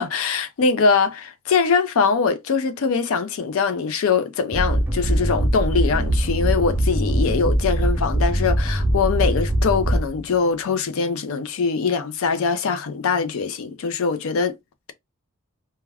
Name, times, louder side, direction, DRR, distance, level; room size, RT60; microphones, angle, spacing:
voice 1, 0.0-14.6, left 5 dB, 65° left, 0.4 m, -22 dB
sound 1, 4.5-10.3, right 1 dB, 10° right, 0.4 m, -21 dB
2.3 x 2.2 x 3.2 m
head